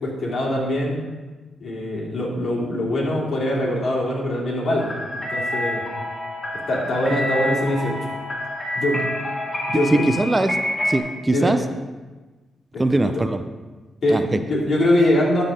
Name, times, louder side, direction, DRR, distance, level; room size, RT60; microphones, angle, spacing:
voice 1, 0.0-1.0 1.6-5.8 6.7-7.9 8.7-9.0 9.7-10.0 11.3-11.5 12.7-13.0 14.0-15.4, left 1 dB, 60° left, -4 dB, 2.8 m, -23 dB
sound 1, 4.8-11.0, left 1 dB, 30° left, 2.6 m, -27 dB
voice 2, 9.7-11.6 12.8-13.4 14.1-14.4, right 2 dB, 20° right, 9 dB, 0.5 m, -21 dB
12.0 x 4.0 x 5.0 m, 1.2 s
supercardioid pair, 55°, 0 cm